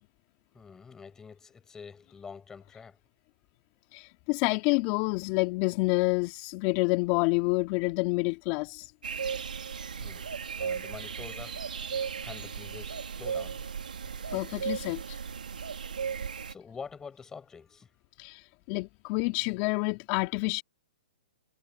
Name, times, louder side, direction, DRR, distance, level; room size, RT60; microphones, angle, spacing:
voice 1, 0.5-3.0 10.0-10.3 10.6-11.6 12.2-13.6 16.5-17.9, left 5 dB, 10° left, 5.9 m, -46 dB
voice 2, 3.9-8.9 14.3-15.2 18.2-20.6, left 26 dB, 35° left, 2.3 m, -28 dB
sound 1, 9.0-16.5, right 6 dB, 85° right, 3.2 m, -36 dB
hypercardioid pair, 135°, 4 cm